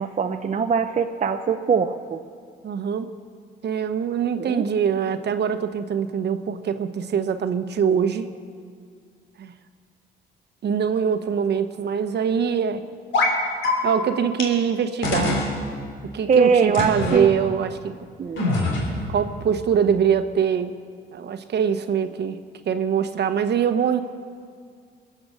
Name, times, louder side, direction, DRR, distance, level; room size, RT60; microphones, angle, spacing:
voice 1, 0.0-2.2 4.4-4.6 16.3-17.3 18.2-18.4, right 6 dB, 35° right, 6 dB, 0.7 m, -21 dB
voice 2, 2.6-3.1 3.6-8.3 9.4-9.5 10.6-12.8 13.8-15.5 16.1-18.0 19.1-20.8 21.1-22.4 22.7-24.0, right 7 dB, 60° right, 9 dB, 1.0 m, -23 dB
sound 1, 13.1-13.4 13.6-13.7 14.4-14.5 15.0-15.5 16.7-17.2 18.4-19.1, left 2 dB, 75° left, 3.4 m, -23 dB
22.0 x 8.7 x 6.6 m, 2.1 s
cardioid pair, 90°, 20 cm